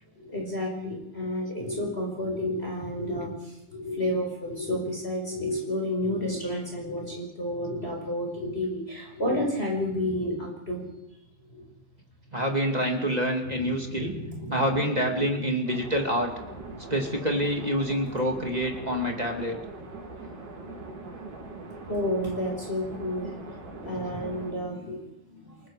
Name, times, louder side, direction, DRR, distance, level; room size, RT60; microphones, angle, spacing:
voice 1, 0.2-10.9 13.4-14.8 15.1-15.3 21.9-23.4 23.6-25.7, left 1 dB, 15° left, -1 dB, 5.6 m, -31 dB
voice 2, 12.3-14.2 14.5-16.3 16.9-19.6, equal, 15° right, 1 dB, 1.7 m, -27 dB
sound 1, 15.6-24.5, right 3 dB, 55° right, 5.2 m, -41 dB
28.5 x 19.0 x 4.9 m, 0.83 s
omnidirectional pair, 4.2 m